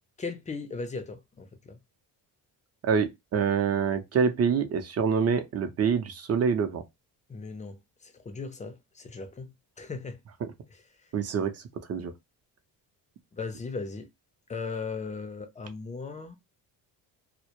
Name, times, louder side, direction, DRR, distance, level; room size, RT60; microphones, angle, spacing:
voice 1, 0.2-1.8 7.3-10.2 10.7-10.8 13.3-14.1 14.5-16.4, left 4 dB, 20° left, 0.4 m, -37 dB
voice 2, 2.8-6.8 10.4-10.5 11.1-11.5 11.9-12.1, right 6 dB, 35° right, 0.5 m, -26 dB
2.1 x 2.0 x 2.9 m
cardioid pair, 95°, 42 cm